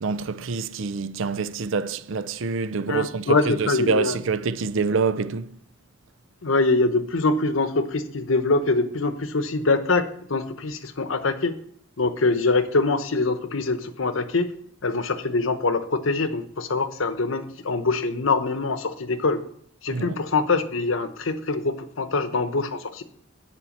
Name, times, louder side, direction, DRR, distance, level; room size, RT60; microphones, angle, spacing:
voice 1, 0.0-5.5 19.9-20.2, right 4 dB, 80° right, 0.5 m, -26 dB
voice 2, 2.9-4.2 6.4-10.0 10.3-11.5 12.0-14.5 14.8-19.4 19.8-23.0, left 3 dB, 90° left, 0.9 m, -24 dB
10.0 x 4.6 x 7.2 m
head